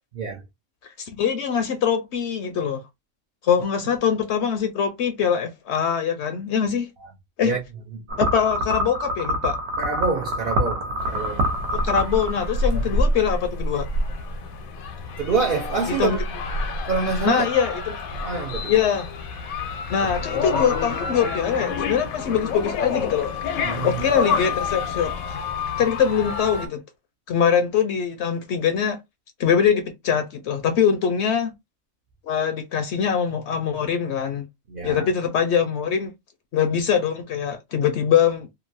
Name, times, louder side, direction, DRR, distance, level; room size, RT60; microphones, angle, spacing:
voice 1, 1.0-2.8 3.4-6.9 7.4-7.5 8.2-9.6 11.7-13.9 15.9-16.2 17.2-18.2 18.7-19.1 19.9-23.3 23.8-25.4 25.8-26.8 27.3-29.0 29.4-31.5 32.3-34.5 34.8-36.1 36.5-38.5, left 7 dB, 65° left, 0.7 m, -23 dB
sound 1, 8.1-12.8, equal, 75° right, 1.2 m, -26 dB
voice 2, 9.8-11.5 12.7-12.8 15.2-16.2 16.9-17.5 18.1-18.8 20.0-20.1 20.5-20.6 23.6-24.1 34.7-35.1, right 4 dB, 60° right, 0.6 m, -26 dB
sound 2, 11.0-26.7, left 3 dB, 85° left, 1.1 m, -28 dB
2.9 x 2.3 x 2.5 m
omnidirectional pair, 1.4 m